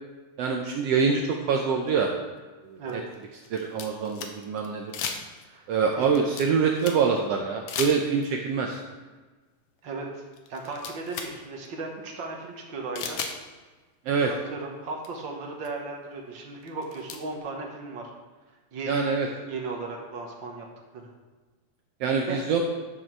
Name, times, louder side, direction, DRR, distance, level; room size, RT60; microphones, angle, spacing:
voice 1, 0.4-2.1 2.6-3.0 3.5-4.9 5.7-8.8 14.1-14.3 18.9-19.3 22.0-22.6, right 5 dB, 85° right, 2 dB, 1.4 m, -25 dB
sound 1, 1.9-2.0 2.9-4.7 4.9-5.6 5.9-7.2 7.7-8.4 9.8-9.9 10.3-11.4 11.6-11.7 13.0-13.4 14.6-14.7 15.0-15.1 15.6-15.7 16.6-17.2, left 6 dB, 70° left, 1.5 m, -35 dB
voice 2, 9.8-10.2 10.5-13.2 14.4-18.1 18.7-19.1 19.5-20.7 20.9-21.1 22.2-22.4, right 3 dB, 60° right, 1 dB, 1.2 m, -36 dB
10.5 x 6.5 x 4.5 m, 1.3 s
omnidirectional pair, 3.7 m